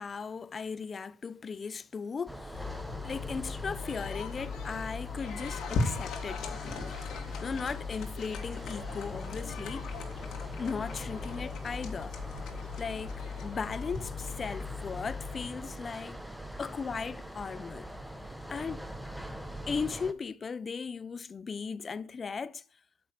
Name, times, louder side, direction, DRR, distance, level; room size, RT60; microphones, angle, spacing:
voice 1, 0.0-2.8 3.0-7.0 7.4-9.9 10.6-12.1 12.8-16.2 16.6-17.9 18.5-18.9 19.7-22.6, left 5 dB, 25° left, 0.4 m, -37 dB
sound 1, 2.3-20.1, right 1 dB, ahead, 0.8 m, -43 dB
sound 2, 2.5-15.5, left 5 dB, 55° left, 2.2 m, -38 dB
9.4 x 6.8 x 6.6 m
cardioid pair, 120°, 0 cm